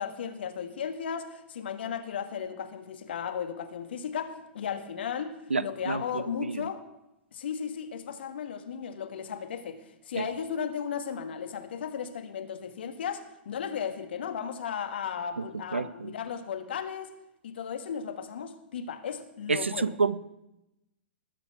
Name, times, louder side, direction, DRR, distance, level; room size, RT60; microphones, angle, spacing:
voice 1, 0.0-6.8 7.3-17.1 17.4-19.9, left 7 dB, 65° left, 7 dB, 1.6 m, -35 dB
voice 2, 5.5-6.7 10.2-10.3 15.4-15.5 15.7-16.1 19.5-20.2, right 4 dB, 85° right, 17 dB, 0.5 m, -29 dB
20.0 x 7.1 x 4.6 m, 0.89 s
figure-of-eight pair, 105°, 6 cm